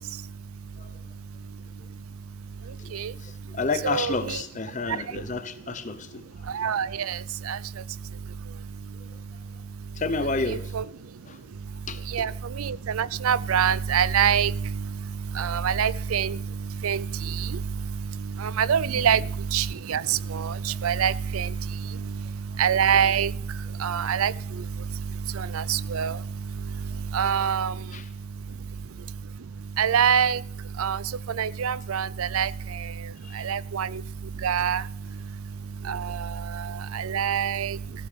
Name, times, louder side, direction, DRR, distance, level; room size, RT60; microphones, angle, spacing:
voice 1, 2.8-6.5 9.0-9.4 9.9-10.7 11.2-11.4 11.9-12.3 18.9-19.2 20.7-20.8 22.0-22.1 22.5-22.6 26.1-26.2 26.9-27.0 27.3-27.4 27.9-28.1 33.2-33.5 35.9-36.0 37.1-37.2, left 3 dB, 35° left, 11 dB, 0.8 m, -32 dB
voice 2, 3.8-4.4 6.5-7.2 7.5-7.6 10.5-10.8 12.1-12.3 12.6-14.5 15.4-16.4 16.8-17.0 17.4-17.5 18.4-19.2 19.5-21.5 22.6-23.3 23.8-24.3 25.4-26.2 27.1-27.7 29.8-30.4 30.8-31.0 31.4-32.5 33.4-33.9 34.4-34.8 35.9-36.2 36.9-37.8, right 8 dB, 85° right, 21 dB, 0.5 m, -24 dB
15.5 x 14.0 x 5.1 m, 0.71 s
head